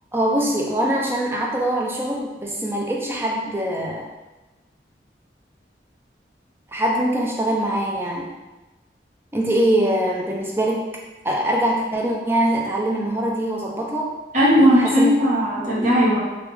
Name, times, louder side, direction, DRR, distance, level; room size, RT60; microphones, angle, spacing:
voice 1, 0.1-4.1 6.7-8.4 9.3-10.9 11.2-14.1 14.6-15.1 15.6-15.9, right 1 dB, 15° right, -1 dB, 0.4 m, -23 dB
voice 2, 14.3-16.2, equal, 45° right, -7 dB, 0.9 m, -17 dB
3.4 x 2.3 x 3.3 m, 1.1 s
head